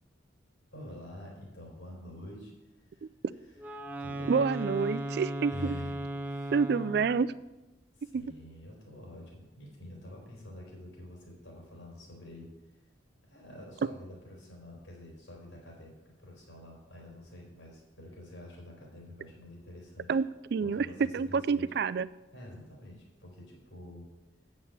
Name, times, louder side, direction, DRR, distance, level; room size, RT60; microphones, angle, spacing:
voice 1, 0.7-2.5 2.9-3.1 4.0-4.3 4.9-5.1 5.5-6.6 7.9-12.5 13.3-20.1 20.6-21.7 22.3-24.0, left 1 dB, 85° left, -2 dB, 3.9 m, -47 dB
Wind instrument woodwind instrument, 3.6-7.3, right 1 dB, 10° right, 0.7 m, -37 dB
voice 2, 4.3-5.7 6.5-7.3 8.1-8.2 20.1-20.3 20.5-20.9 21.1-22.1, right 5 dB, 55° right, 18 dB, 0.3 m, -28 dB
8.3 x 7.4 x 7.2 m, 1.0 s
head